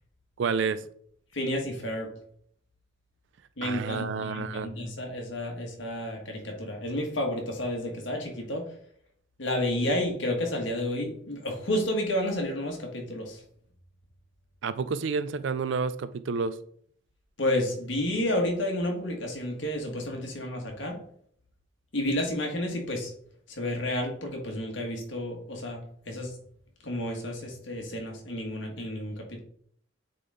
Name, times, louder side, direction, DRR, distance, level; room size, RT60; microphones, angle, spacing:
voice 1, 0.4-0.9 3.6-4.7 14.6-16.6, right 5 dB, 65° right, 0.4 m, -29 dB
voice 2, 1.3-2.1 3.6-8.6 9.4-13.4 17.4-21.0 21.9-23.1 23.6-26.3 26.8-29.4, left 1 dB, 65° left, 1.8 m, -31 dB
8.4 x 4.0 x 3.7 m
head